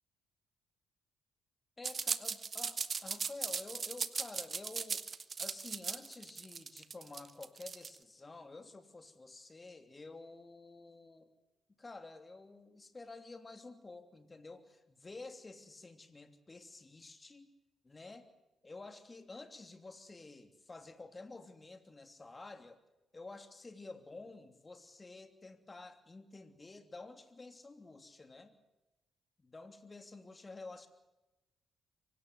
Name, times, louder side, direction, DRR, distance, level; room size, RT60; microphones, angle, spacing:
voice 1, 1.8-5.1 5.4-11.3 11.8-17.5 17.8-18.3 18.6-22.8 23.1-28.5 29.4-30.9, left 3 dB, 30° left, 8 dB, 3.0 m, -51 dB
sound 1, 1.8-8.0, right 5 dB, 45° right, 1.4 m, -38 dB
24.5 x 17.5 x 9.6 m, 1.0 s
figure-of-eight pair, 40°, 0 cm